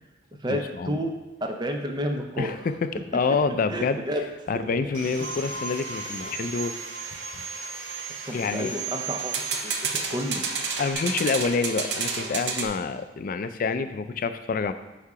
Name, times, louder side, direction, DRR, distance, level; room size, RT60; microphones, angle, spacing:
voice 1, 0.5-0.9 2.4-2.7 3.1-4.0 4.5-6.7 8.3-8.7 10.8-14.7, left 4 dB, 50° left, 10 dB, 0.3 m, -27 dB
voice 2, 1.4-2.7 3.7-4.5 8.2-10.4, equal, 25° right, 3 dB, 0.6 m, -31 dB
Sawing, 4.9-10.9, right 6 dB, 85° right, 1.0 m, -36 dB
sound 1, 5.2-9.0, left 2 dB, 25° left, 1.4 m, -42 dB
sound 2, 6.2-6.4 9.2-12.7, right 5 dB, 65° right, 0.6 m, -30 dB
8.3 x 2.8 x 4.8 m, 1.1 s
head